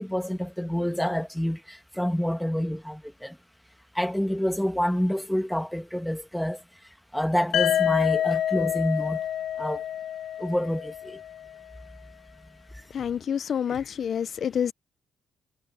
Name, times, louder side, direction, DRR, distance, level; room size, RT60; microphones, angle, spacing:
voice 1, 0.0-3.4 3.9-6.6 7.1-9.2 9.6-9.8 10.4-11.2, equal, 5° left, 1.7 m, -27 dB
sound 1, 7.5-11.4, left 10 dB, 80° left, 1.3 m, -27 dB
voice 2, 12.9-14.7, left 8 dB, 55° left, 0.4 m, -28 dB
cardioid pair, 90°, 0 cm